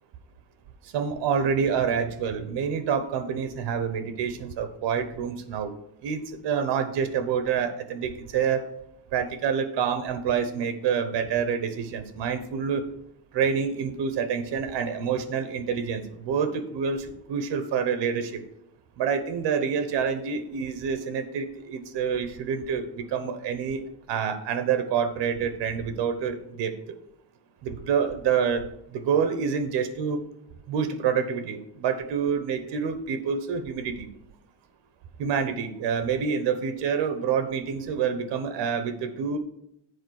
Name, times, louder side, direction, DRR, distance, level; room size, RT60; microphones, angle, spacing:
voice 1, 0.8-8.7 9.1-12.8 13.3-18.4 19.0-23.8 24.1-26.8 27.6-28.6 28.9-30.2 30.7-34.1 35.2-39.4, right 7 dB, 65° right, 10 dB, 1.1 m, -27 dB
7.9 x 4.9 x 6.4 m, 0.77 s
cardioid pair, 155°, 44 cm